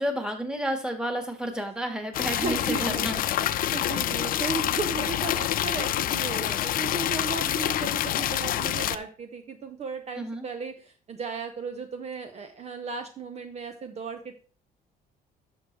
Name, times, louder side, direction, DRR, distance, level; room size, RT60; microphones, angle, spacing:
voice 1, 0.0-3.2 3.8-4.1 10.1-10.4, right 1 dB, 5° right, 5 dB, 1.7 m, -31 dB
sound 1, 2.1-9.0, left 12 dB, 55° left, 0.5 m, -27 dB
voice 2, 2.4-3.2 3.5-14.3, right 5 dB, 40° right, 7 dB, 0.9 m, -35 dB
11.0 x 6.3 x 3.2 m, 0.37 s
cardioid pair, 110°, 17 cm